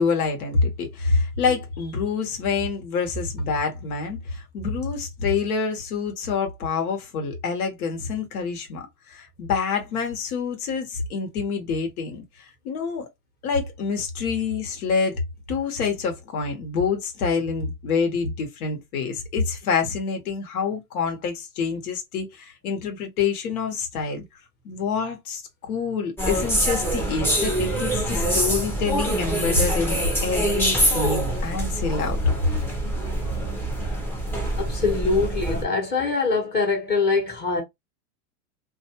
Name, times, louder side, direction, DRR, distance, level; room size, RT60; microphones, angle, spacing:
voice 1, 0.0-13.1 13.4-15.2 15.5-24.2 24.6-25.4 25.7-32.2, left 5 dB, 75° left, 1.2 m, -27 dB
sound 1, 26.2-35.6, right 1 dB, 5° left, 0.6 m, -25 dB
voice 2, 34.6-37.6, left 4 dB, 20° left, 1.0 m, -23 dB
2.5 x 2.3 x 2.8 m
supercardioid pair, 130°, 45 cm